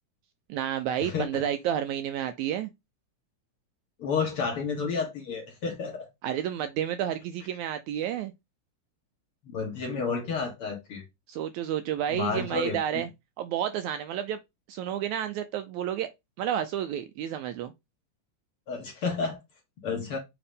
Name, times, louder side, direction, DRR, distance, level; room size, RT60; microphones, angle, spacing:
voice 1, 0.5-2.7 6.2-8.3 11.3-13.1 13.4-14.4 14.7-16.1 16.4-17.7, right 10 dB, 80° right, 1.7 m, -30 dB
voice 2, 1.0-1.4 4.0-6.1 9.5-11.0 12.1-13.0 18.7-19.4 19.8-20.2, left 5 dB, 55° left, 1.7 m, -31 dB
7.0 x 2.9 x 5.2 m
omnidirectional pair, 3.7 m